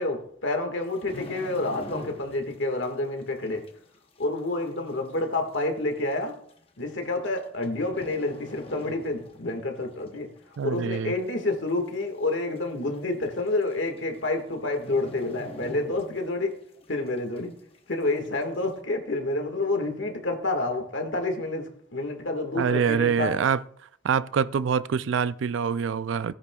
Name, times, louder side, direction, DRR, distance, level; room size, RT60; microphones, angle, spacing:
voice 1, 0.0-3.6 4.2-6.3 6.8-10.3 10.6-16.5 16.9-17.5 17.9-21.6 21.9-23.3, left 2 dB, 80° left, 1.7 m, -28 dB
sound 1, 0.8-2.6 2.8-3.1 3.7-3.8 4.7-4.8 5.0-5.1 5.9-6.1 7.2-7.6 7.9-9.5 9.8-10.0 10.5-11.1 11.4-11.5 11.7-11.8 12.2-12.3 13.3-13.4 13.7-14.0 14.2-14.4 14.8-16.4 16.8-16.9, left 1 dB, 30° left, 0.9 m, -42 dB
voice 2, 10.6-11.1 22.5-23.6 24.0-26.3, right 6 dB, 80° right, 0.4 m, -25 dB
16.5 x 9.7 x 2.3 m
head